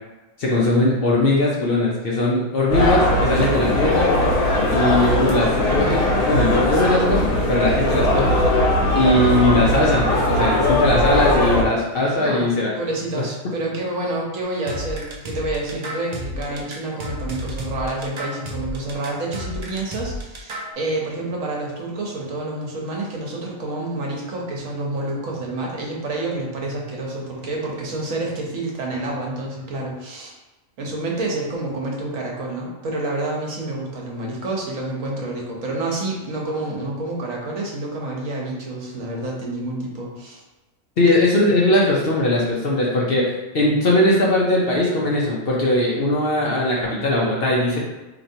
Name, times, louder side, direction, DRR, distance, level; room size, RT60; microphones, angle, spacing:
voice 1, 0.4-4.1 4.7-8.3 8.9-12.7 41.0-47.8, left 1 dB, 55° left, -4 dB, 0.7 m, -20 dB
sound 1, 2.7-11.6, left 1 dB, 75° left, 1.3 m, -19 dB
voice 2, 12.7-30.3 30.8-40.4, right 2 dB, 75° right, -2 dB, 1.2 m, -28 dB
sound 2, 14.7-20.7, equal, 60° right, 0.4 m, -32 dB
4.4 x 2.9 x 2.7 m, 1.1 s
omnidirectional pair, 1.4 m